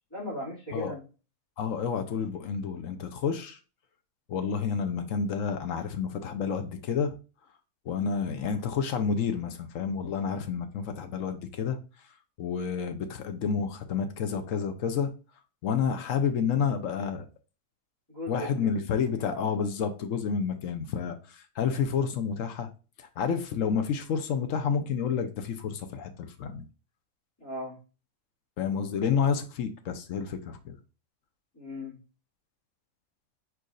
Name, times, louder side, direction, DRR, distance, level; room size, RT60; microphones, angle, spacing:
voice 1, 0.1-1.0 18.1-19.5 27.4-27.8 31.5-32.0, left 1 dB, 15° left, 2.4 m, -38 dB
voice 2, 1.6-3.6 4.3-7.1 7.8-11.8 12.4-15.1 15.6-17.3 18.3-22.7 23.0-26.6 28.6-30.8, left 6 dB, 65° left, 1.0 m, -29 dB
4.7 x 4.5 x 2.4 m
omnidirectional pair, 1.6 m